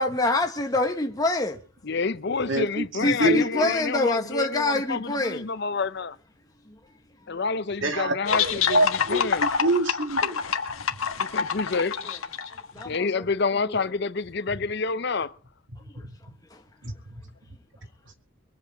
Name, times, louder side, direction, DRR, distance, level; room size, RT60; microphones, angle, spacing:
voice 1, 0.0-1.6 3.0-5.5 12.7-13.2 13.7-13.8 16.5-16.6, left 2 dB, 15° left, 1.0 m, -25 dB
voice 2, 1.8-6.2 7.3-8.8 9.1-9.4 11.2-12.0 12.8-15.3, left 4 dB, 50° left, 0.6 m, -28 dB
voice 3, 2.5-3.7 7.8-10.4 14.5-14.6 16.0-16.1 16.8-17.2, right 2 dB, 60° right, 2.2 m, -27 dB
sound 1, 8.3-13.0, left 6 dB, 75° left, 1.4 m, -26 dB
23.0 x 8.3 x 5.0 m
head